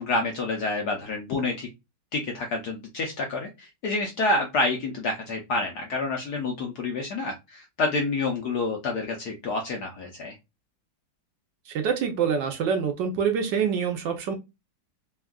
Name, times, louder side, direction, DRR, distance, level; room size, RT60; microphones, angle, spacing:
voice 1, 0.0-1.7 2.1-10.3, left 3 dB, 70° left, 1 dB, 0.9 m, -28 dB
voice 2, 11.7-14.4, right 7 dB, 70° right, 4 dB, 1.2 m, -26 dB
3.5 x 2.3 x 2.2 m, 0.23 s
omnidirectional pair, 2.3 m